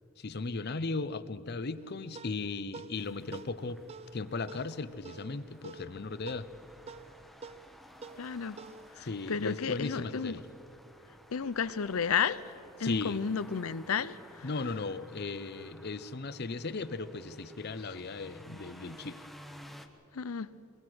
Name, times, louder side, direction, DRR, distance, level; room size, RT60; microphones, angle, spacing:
voice 1, 0.2-3.8 4.1-6.5 9.0-10.4 12.8-13.2 14.4-19.3, left 3 dB, 50° left, 0.7 m, -37 dB
sound 1, 1.8-10.5, right 4 dB, 30° right, 0.4 m, -51 dB
sound 2, 2.9-19.9, equal, ahead, 1.0 m, -54 dB
voice 2, 8.2-8.6 8.9-10.3 11.3-12.4 12.8-14.5 20.1-20.5, left 6 dB, 90° left, 0.6 m, -32 dB
23.0 x 21.0 x 6.2 m
head